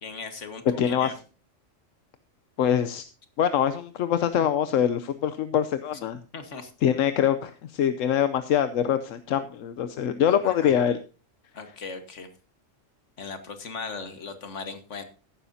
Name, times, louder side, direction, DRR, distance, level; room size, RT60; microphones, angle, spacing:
voice 1, 0.0-1.1 6.3-6.7 10.3-10.7 11.5-12.3 13.2-15.0, left 4 dB, 65° left, 8 dB, 1.9 m, -38 dB
voice 2, 0.8-1.1 2.6-3.0 3.4-6.2 6.8-11.0, left 9 dB, 85° left, 10 dB, 1.1 m, -24 dB
15.0 x 11.5 x 2.7 m, 0.34 s
omnidirectional pair, 1.3 m